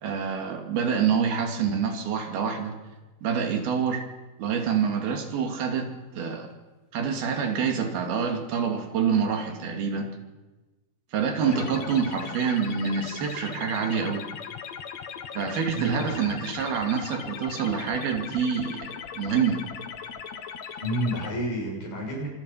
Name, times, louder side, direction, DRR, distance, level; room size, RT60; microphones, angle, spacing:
voice 1, 0.0-2.7 3.2-4.0 4.4-6.5 6.9-10.1 11.1-14.3 15.3-19.6, right 6 dB, 75° right, 4 dB, 4.5 m, -27 dB
voice 2, 11.4-12.0 15.7-16.3 20.8-22.3, equal, 75° left, -1 dB, 9.0 m, -31 dB
sound 1, 11.5-21.3, left 7 dB, 60° left, 2.2 m, -39 dB
25.5 x 24.5 x 5.8 m, 1.2 s
omnidirectional pair, 4.4 m